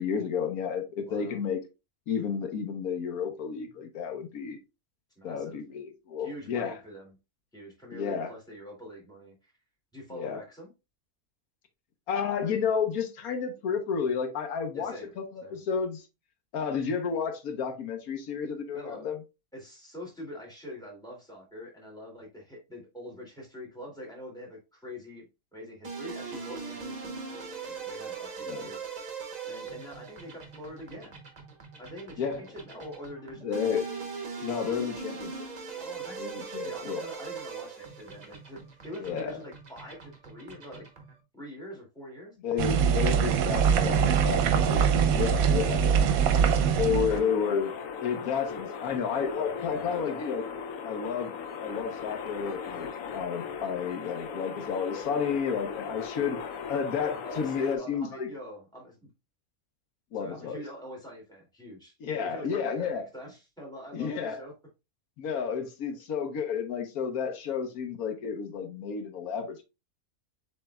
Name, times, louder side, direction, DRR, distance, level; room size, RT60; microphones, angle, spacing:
voice 1, 0.0-1.6 2.1-4.6 5.2-6.7 7.9-8.3 10.1-10.4 12.1-14.9 15.5-16.0 16.5-19.2 28.4-28.7 32.2-32.5 33.4-33.9 34.4-35.3 36.2-37.1 38.9-39.4 42.4-44.4 44.7-45.8 46.8-47.7 48.0-50.5 50.8-51.3 51.6-56.4 56.7-58.3 60.1-60.6 62.0-63.0 63.9-64.4 65.2-69.6, left 6 dB, 85° left, 1.3 m, -31 dB
voice 2, 1.1-1.4 5.2-5.6 6.2-7.2 7.5-9.5 9.9-10.7 14.7-15.1 15.4-15.6 18.7-19.0 19.5-29.1 29.5-31.2 31.8-33.7 35.7-36.3 36.6-40.9 41.3-42.4 43.5-44.2 45.1-46.1 46.6-47.2 49.7-50.0 57.2-59.1 60.1-64.5, equal, 5° left, 2.3 m, -44 dB
sound 1, 25.8-41.2, right 5 dB, 35° right, 1.0 m, -41 dB
sound 2, 42.6-47.2, right 7 dB, 80° right, 1.0 m, -23 dB
sound 3, 47.1-57.8, left 6 dB, 70° left, 1.0 m, -38 dB
7.2 x 3.3 x 2.2 m
omnidirectional pair, 1.5 m